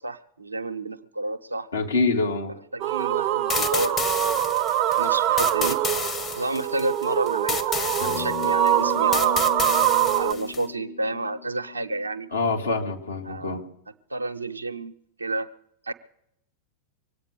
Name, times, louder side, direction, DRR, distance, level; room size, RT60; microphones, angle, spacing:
voice 1, 0.0-1.7 2.7-4.6 5.0-5.8 6.4-9.5 10.2-12.3 13.2-13.6 14.1-15.5 15.8-15.9, right 2 dB, 80° right, 9 dB, 0.8 m, -30 dB
voice 2, 1.7-2.6 12.3-13.6, left 3 dB, 75° left, 1 dB, 2.1 m, -25 dB
sound 1, 2.8-10.3, right 12 dB, 40° right, 0.7 m, -24 dB
sound 2, 3.5-10.6, left 5 dB, 25° left, 1.0 m, -31 dB
sound 3, 8.0-12.7, left 7 dB, 55° left, 1.4 m, -36 dB
23.5 x 8.8 x 6.5 m, 0.77 s
figure-of-eight pair, 90°, 0 cm